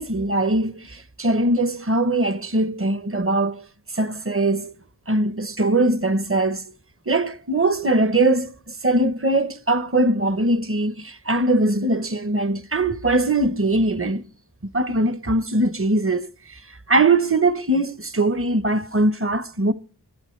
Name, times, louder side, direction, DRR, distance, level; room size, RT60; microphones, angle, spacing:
voice 1, 0.0-3.7 3.9-4.7 5.1-6.7 7.1-14.2 14.6-16.6 16.9-19.7, right 2 dB, 35° right, 1.0 m, -21 dB
22.5 x 8.6 x 3.2 m
wide cardioid pair, 50°, 40 cm